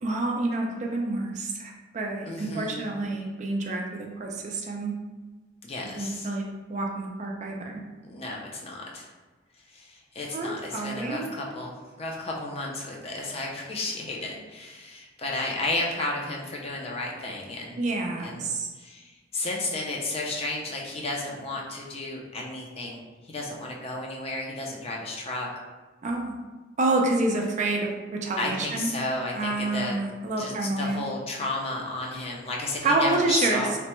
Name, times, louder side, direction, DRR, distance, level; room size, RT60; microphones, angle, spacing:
voice 1, 0.0-4.9 6.0-7.8 10.3-11.3 17.8-18.7 26.0-26.3 26.8-28.9 29.4-31.0 32.8-33.6, right 2 dB, 35° right, 1 dB, 0.3 m, -28 dB
voice 2, 2.3-2.9 5.6-6.4 8.0-9.1 9.7-17.8 18.2-18.5 18.8-25.7 28.4-30.0 30.4-33.7, left 2 dB, 30° left, -2 dB, 0.4 m, -33 dB
3.2 x 2.1 x 2.9 m, 1.3 s
head